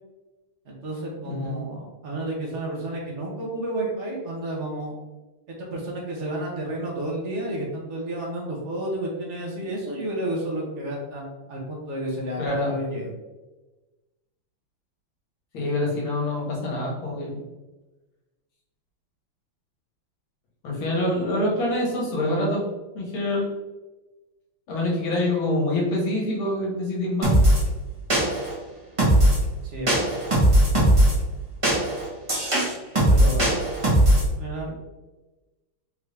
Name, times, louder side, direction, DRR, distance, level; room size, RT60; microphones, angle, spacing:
voice 1, 0.6-5.0 5.5-13.1 29.6-30.1 33.1-33.5 34.2-34.7, right 1 dB, 50° right, -2 dB, 1.0 m, -31 dB
voice 2, 1.2-1.6 12.4-12.8 15.5-17.4 20.6-22.6 22.9-23.5 24.7-27.3, left 1 dB, 80° left, -4 dB, 2.1 m, -26 dB
sound 1, 27.2-27.6 28.1-28.5 29.0-29.4 29.9-31.1 31.6-34.3, right 1 dB, 25° right, 0.7 m, -19 dB
4.6 x 2.7 x 3.3 m, 1.1 s
omnidirectional pair, 2.2 m